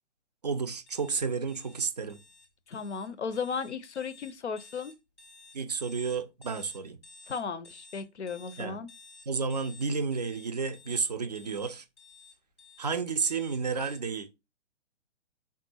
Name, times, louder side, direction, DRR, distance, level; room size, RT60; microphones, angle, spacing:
voice 1, 0.4-2.2 5.5-7.0 8.6-8.8 9.3-11.8 12.8-14.3, right 5 dB, 40° right, 0.4 m, -31 dB
sound 1, 0.9-14.0, left 3 dB, 25° left, 0.4 m, -54 dB
voice 2, 2.7-4.9 7.3-8.9, left 5 dB, 70° left, 0.6 m, -35 dB
3.6 x 2.3 x 4.1 m
figure-of-eight pair, 130°, 35 cm